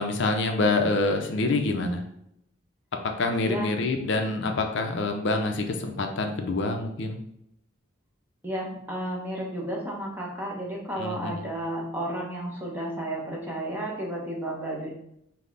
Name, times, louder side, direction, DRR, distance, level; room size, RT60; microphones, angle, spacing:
voice 1, 0.0-2.0 3.2-7.2 11.0-11.4, left 2 dB, 60° left, 4 dB, 0.5 m, -26 dB
voice 2, 8.4-14.9, right 1 dB, 10° right, -3 dB, 0.9 m, -32 dB
5.3 x 2.0 x 3.9 m, 0.76 s
head